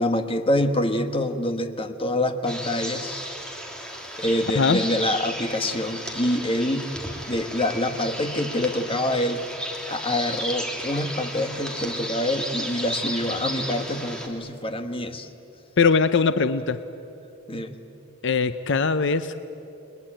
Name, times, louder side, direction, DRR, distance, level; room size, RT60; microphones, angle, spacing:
voice 1, 0.0-3.2 4.2-6.9 7.2-9.4 9.9-15.3 17.5-17.8, left 1 dB, 25° left, 7 dB, 1.5 m, -26 dB
sound 1, 2.5-14.3, equal, 5° left, 3.0 m, -34 dB
voice 2, 15.8-16.8 18.2-19.4, left 5 dB, 60° left, 12 dB, 0.7 m, -21 dB
30.0 x 22.0 x 9.1 m, 2.9 s
head